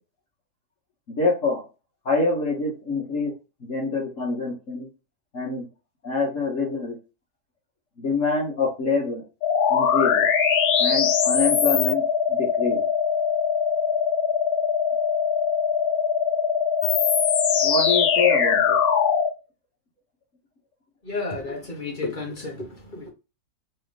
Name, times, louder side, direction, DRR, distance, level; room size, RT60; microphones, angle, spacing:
voice 1, 1.1-1.7 2.0-3.3 3.6-4.9 5.3-5.7 6.0-7.0 8.0-9.2 9.7-10.3 10.8-12.0 12.3-12.8 17.6-18.8, left 3 dB, 50° left, 1.7 m, -25 dB
sound 1, 9.4-19.3, left 7 dB, 70° left, 1.2 m, -21 dB
voice 2, 21.0-23.1, left 3 dB, 30° left, 1.2 m, -32 dB
3.5 x 3.4 x 3.4 m
omnidirectional pair, 1.8 m